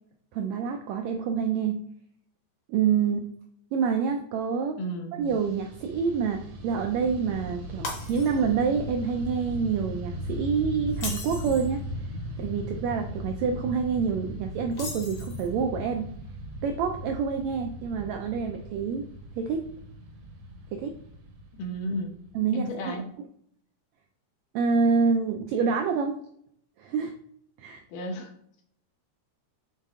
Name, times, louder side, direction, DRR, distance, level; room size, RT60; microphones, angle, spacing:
voice 1, 0.3-1.8 2.7-3.3 3.7-4.8 5.2-11.8 12.4-16.1 16.6-19.1 19.4-19.7 20.7-21.0 22.3-23.0 24.5-26.2 26.8-27.1 27.6-27.8, right 6 dB, 85° right, 5 dB, 1.6 m, -27 dB
voice 2, 4.8-5.1 21.6-22.1 22.5-23.1 27.9-28.3, equal, 80° left, 2 dB, 2.6 m, -33 dB
Fixed-wing aircraft airplane, 5.2-22.7, equal, 65° right, 1.6 m, -38 dB
Shatter, 7.8-8.6 9.0-9.3 10.9-11.7 14.7-15.6, left 3 dB, 50° left, 1.4 m, -37 dB
7.3 x 3.7 x 3.7 m, 0.68 s
omnidirectional pair, 3.7 m